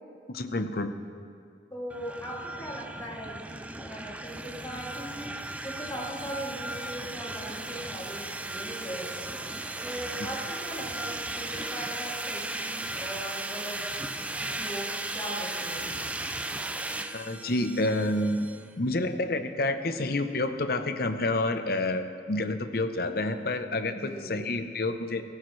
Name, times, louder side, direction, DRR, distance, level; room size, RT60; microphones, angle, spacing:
voice 1, 0.3-0.9 17.1-18.5 18.8-25.2, left 2 dB, 55° left, 8 dB, 0.8 m, -29 dB
voice 2, 1.7-5.3 5.6-9.4 9.8-13.8 14.4-14.9 15.1-15.9 23.9-24.4, equal, 15° left, -5 dB, 2.6 m, -39 dB
sound 1, 1.9-18.7, right 2 dB, 5° right, 0.3 m, -36 dB
18.0 x 15.5 x 3.2 m, 2.3 s
head